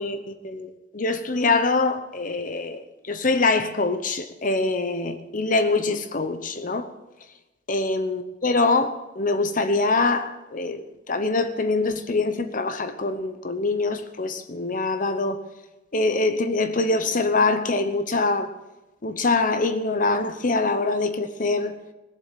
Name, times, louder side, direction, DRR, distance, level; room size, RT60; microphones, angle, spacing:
voice 1, 0.0-6.9 7.7-15.4 15.9-18.5 19.0-21.7, left 3 dB, 45° left, 0.9 m, -24 dB
20.0 x 7.4 x 9.1 m
head